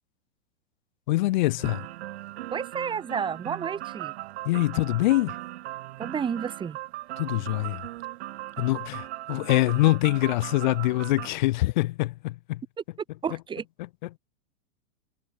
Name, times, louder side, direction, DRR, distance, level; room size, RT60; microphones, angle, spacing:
voice 1, 1.1-1.9 4.4-5.4 7.2-7.9 8.6-12.6 13.8-14.2, left 18 dB, 40° left, 0.4 m, -25 dB
sound 1, 1.6-11.3, right 16 dB, 55° right, 1.4 m, -38 dB
voice 2, 2.5-4.1 6.0-6.8 13.2-13.6, right 7 dB, 15° right, 1.8 m, -31 dB
hypercardioid pair, 145°, 37 cm